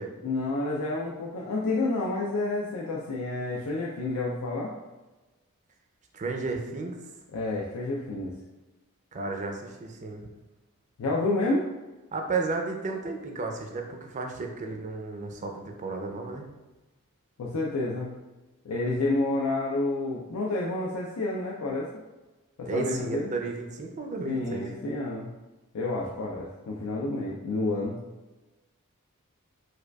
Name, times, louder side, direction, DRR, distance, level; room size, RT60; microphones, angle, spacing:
voice 1, 0.2-4.7 7.3-8.3 11.0-11.6 17.4-18.1 18.7-21.9 22.6-23.3 24.2-25.3 25.7-28.0, left 2 dB, 80° left, -3 dB, 0.4 m, -29 dB
voice 2, 6.1-7.0 9.1-10.3 12.1-16.5 22.7-24.7, right 3 dB, 35° right, 3 dB, 0.4 m, -33 dB
4.7 x 2.3 x 2.3 m, 1.1 s
head